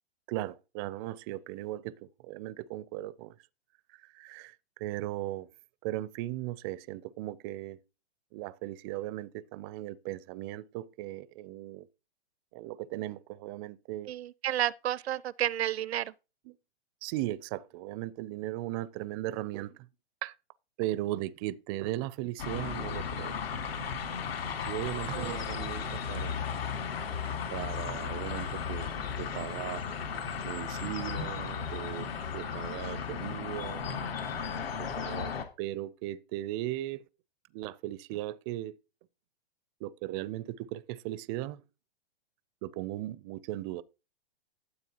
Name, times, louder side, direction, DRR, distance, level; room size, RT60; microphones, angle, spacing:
voice 1, 0.3-3.3 3.9-5.5 5.8-7.8 8.3-11.9 12.5-14.1 16.4-16.6 17.0-19.9 20.2-20.3 20.8-23.4 24.6-26.4 27.5-28.9 29.2-29.8 30.4-32.1 32.3-34.0 34.9-35.3 35.6-37.1 37.5-38.8 39.8-41.6 42.6-43.8, right 15 dB, 25° right, 0.4 m, -37 dB
voice 2, 14.1-16.0 25.2-25.3, right 12 dB, 80° right, 0.5 m, -31 dB
sound 1, 22.4-35.4, left 6 dB, 70° left, 2.0 m, -35 dB
12.5 x 7.5 x 2.9 m
hypercardioid pair, 130°, 31 cm